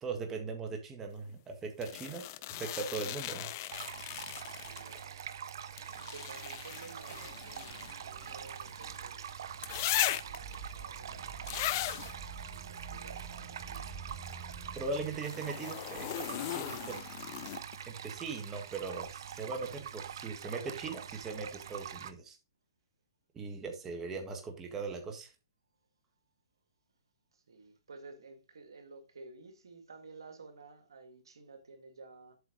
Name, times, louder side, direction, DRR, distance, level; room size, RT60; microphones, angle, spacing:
voice 1, 0.0-2.2 2.6-3.5 14.8-17.0 17.8-22.4 23.3-25.3, right 4 dB, 15° right, 1.7 m, -39 dB
sound 1, 1.8-5.0 5.8-9.0 9.6-10.5 11.5-12.1 15.1-17.8 19.7-19.8, left 14 dB, 40° left, 0.5 m, -38 dB
sound 2, 2.8-15.2, right 4 dB, 40° right, 4.4 m, -51 dB
sound 3, 3.7-22.1, right 8 dB, 65° right, 0.8 m, -44 dB
voice 2, 4.5-5.4 5.8-9.2 10.2-13.9 27.3-32.4, right 3 dB, 85° right, 1.9 m, -53 dB
8.1 x 4.6 x 5.1 m
hypercardioid pair, 140°, 2 cm